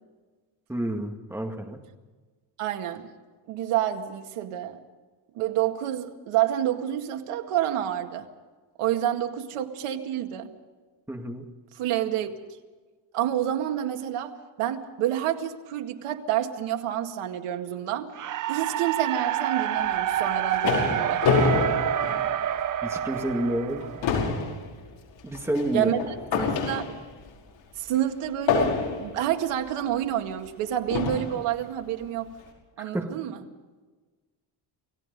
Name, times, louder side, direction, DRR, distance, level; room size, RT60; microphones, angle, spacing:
voice 1, 0.7-1.8 11.1-11.5 22.8-23.8 25.2-25.9 26.3-26.6 32.8-33.1, right 1 dB, 5° right, 2 dB, 2.0 m, -29 dB
voice 2, 2.6-3.1 3.5-4.8 5.3-8.3 8.8-10.5 11.7-12.6 13.1-18.1 18.5-21.3 25.7-26.0 26.4-26.9 27.8-32.3 32.8-33.4, right 11 dB, 80° right, 5 dB, 2.2 m, -28 dB
sound 1, 18.1-24.3, right 10 dB, 40° right, 0.7 m, -28 dB
sound 2, 20.1-22.8 23.2-23.4 23.7-27.2 28.5-29.2 30.1-30.2 30.9-31.4, left 5 dB, 60° left, 5.4 m, -27 dB
29.0 x 18.0 x 5.3 m, 1.3 s
cardioid pair, 170°, 50 cm